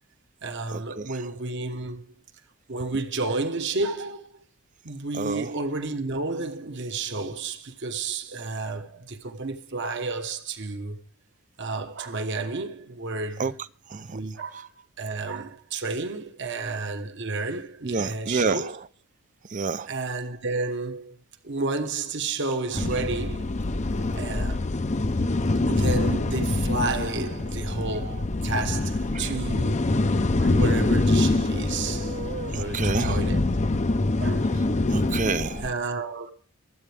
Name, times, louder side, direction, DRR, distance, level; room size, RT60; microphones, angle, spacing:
voice 1, 0.4-2.0 2.7-4.4 4.8-11.0 11.6-13.5 14.1-18.8 19.9-21.2 21.4-23.6 24.1-24.9 25.7-30.0 30.4-32.2 32.5-33.6 34.2-34.5 35.6-36.3, right 3 dB, 55° right, 1.2 m, -31 dB
voice 2, 5.2-5.5 13.4-13.5 13.9-14.2 17.8-18.6 19.5-19.9 29.1-29.3 31.7-33.2 34.9-35.6, right 4 dB, 35° right, 0.5 m, -29 dB
sound 1, 22.7-35.7, left 2 dB, 35° left, 0.7 m, -25 dB
23.0 x 8.8 x 3.5 m
head